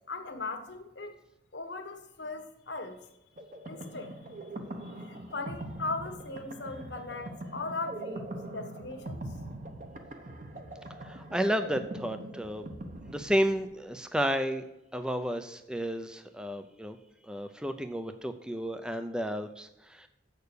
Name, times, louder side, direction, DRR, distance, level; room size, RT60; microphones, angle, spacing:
voice 1, 0.1-1.1 1.5-3.0 3.7-4.2 4.6-9.3, left 3 dB, 70° left, 6 dB, 1.3 m, -39 dB
sound 1, 3.4-13.9, right 1 dB, 45° right, 1.0 m, -42 dB
voice 2, 11.0-12.7 13.1-14.6 14.9-17.0 17.2-20.1, equal, 5° right, 8 dB, 0.5 m, -32 dB
8.0 x 6.6 x 6.7 m, 0.92 s
head